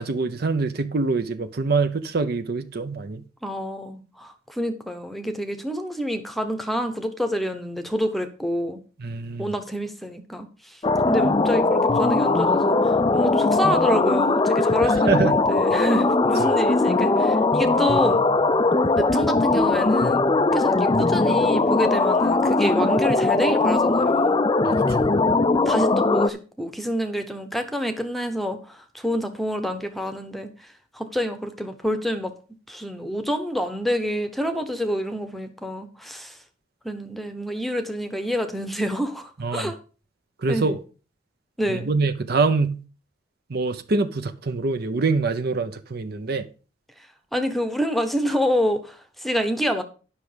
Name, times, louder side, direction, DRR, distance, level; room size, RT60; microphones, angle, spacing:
voice 1, 0.0-3.2 9.0-9.5 14.9-15.4 16.4-16.5 24.6-25.1 39.4-39.7 40.4-40.8 41.7-42.8 43.5-46.4, right 3 dB, 50° right, 0.6 m, -25 dB
voice 2, 3.4-8.8 9.4-10.8 11.0-18.2 19.0-20.2 20.5-24.4 25.7-30.7 30.9-32.3 32.7-36.4 36.8-39.8 40.5-40.7 41.6-41.9 47.3-49.8, equal, ahead, 0.9 m, -27 dB
sound 1, 10.8-26.3, left 3 dB, 20° left, 0.4 m, -20 dB
10.0 x 6.0 x 5.0 m
head